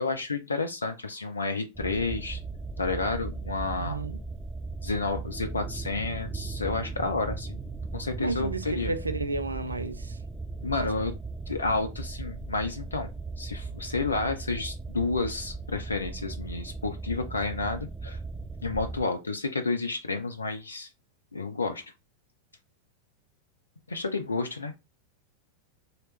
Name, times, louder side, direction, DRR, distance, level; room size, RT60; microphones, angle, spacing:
voice 1, 0.0-2.4 2.8-4.0 4.8-7.6 7.9-8.9 10.6-11.1 11.5-13.1 13.4-18.2 18.6-20.9 21.3-21.8 23.9-24.7, left 3 dB, 75° left, 0.4 m, -30 dB
sound 1, 1.7-19.0, right 3 dB, 10° right, 0.4 m, -37 dB
voice 2, 3.7-4.2 8.2-10.1 10.8-10.9, right 2 dB, 80° right, 0.4 m, -32 dB
3.0 x 2.8 x 3.2 m
figure-of-eight pair, 90°, 0 cm